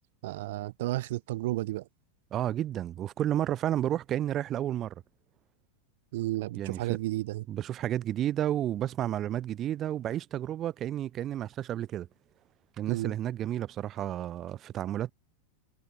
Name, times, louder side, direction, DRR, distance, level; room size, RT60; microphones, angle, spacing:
voice 1, 0.2-1.9 6.1-7.4 12.9-13.1, right 17 dB, 65° right, 1.3 m, -32 dB
voice 2, 2.3-5.0 6.6-7.0 7.5-12.1 12.8-15.1, right 12 dB, 35° right, 0.7 m, -31 dB
hypercardioid pair, 110°, 0 cm